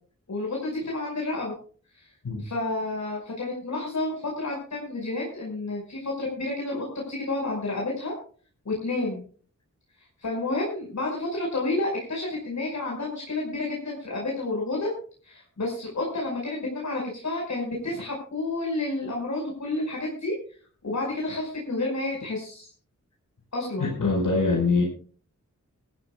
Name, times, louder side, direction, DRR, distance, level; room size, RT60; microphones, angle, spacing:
voice 1, 0.3-1.5 2.4-8.1 8.7-9.2 10.2-14.9 15.2-20.3 20.8-22.7 23.5-23.9, left 2 dB, 65° left, -2 dB, 5.4 m, -30 dB
voice 2, 23.8-24.8, left 3 dB, 90° left, -1 dB, 5.1 m, -23 dB
23.5 x 14.0 x 2.4 m, 0.42 s
wide cardioid pair, 100°, 31 cm